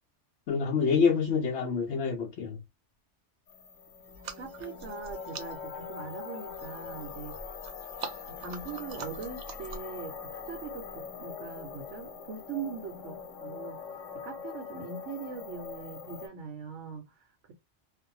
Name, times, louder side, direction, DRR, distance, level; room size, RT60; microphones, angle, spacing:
voice 1, 0.5-2.6, left 5 dB, 70° left, 0.9 m, -26 dB
sound 1, 3.5-16.3, left 6 dB, 90° left, 1.1 m, -42 dB
sound 2, 4.0-10.0, right 5 dB, 50° right, 0.5 m, -46 dB
voice 2, 4.4-7.4 7.8-7.9 8.2-13.8 14.1-17.5, right 6 dB, 75° right, 1.0 m, -41 dB
2.5 x 2.2 x 2.6 m
omnidirectional pair, 1.3 m